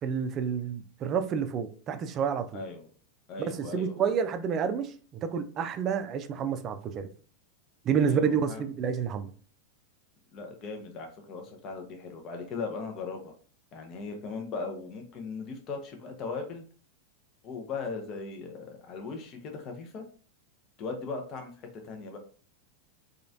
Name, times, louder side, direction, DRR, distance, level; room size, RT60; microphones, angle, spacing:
voice 1, 0.0-2.6 3.4-7.1 7.8-9.3, right 7 dB, 35° right, 0.4 m, -29 dB
voice 2, 2.5-2.9 3.3-4.1 8.0-8.6 10.3-13.3 13.7-16.6 17.4-20.0 20.8-22.2, left 4 dB, 40° left, 0.7 m, -38 dB
3.0 x 2.4 x 2.6 m
figure-of-eight pair, 90°, 0 cm